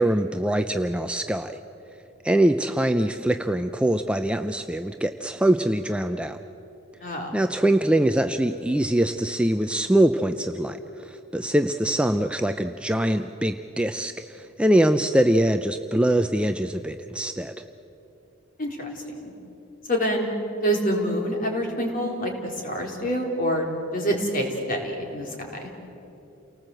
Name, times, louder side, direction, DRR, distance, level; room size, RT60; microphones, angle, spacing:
voice 1, 0.0-1.6 2.2-6.4 7.3-17.5, right 1 dB, 5° right, 7 dB, 0.5 m, -23 dB
voice 2, 19.9-20.3 20.6-22.3 22.6-23.7 23.9-25.7, equal, 40° left, 1 dB, 3.8 m, -26 dB
29.0 x 19.0 x 7.7 m, 2.9 s
head